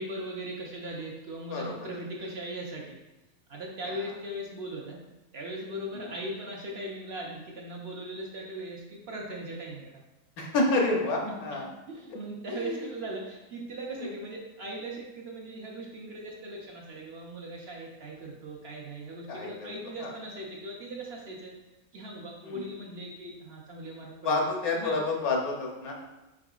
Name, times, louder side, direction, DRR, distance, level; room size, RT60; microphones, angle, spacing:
voice 1, 0.0-3.0 3.5-5.0 5.3-10.0 10.9-11.0 11.2-11.6 11.9-21.5 21.9-24.5 24.8-25.0, right 1 dB, 55° right, -2 dB, 0.8 m, -39 dB
voice 2, 10.4-11.7 12.5-12.8 14.0-14.1 19.3-19.7 20.0-20.1 22.4-22.7 24.2-25.9, left 2 dB, 85° left, 0 dB, 1.3 m, -29 dB
4.8 x 4.6 x 2.3 m, 1.0 s
omnidirectional pair, 1.5 m